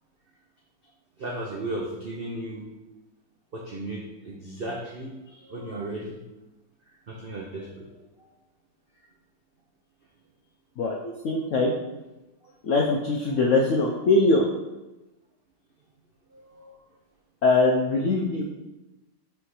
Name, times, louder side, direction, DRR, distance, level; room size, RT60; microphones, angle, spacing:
voice 1, 1.2-2.7 3.5-6.2 7.1-7.9 8.2-8.3 12.4-12.5 16.3-16.8, right 1 dB, 85° right, -2 dB, 0.5 m, -35 dB
voice 2, 11.2-11.7 12.6-14.5 17.4-18.4, left 2 dB, 75° left, 0 dB, 0.7 m, -22 dB
6.2 x 3.6 x 4.7 m, 1.1 s
omnidirectional pair, 2.0 m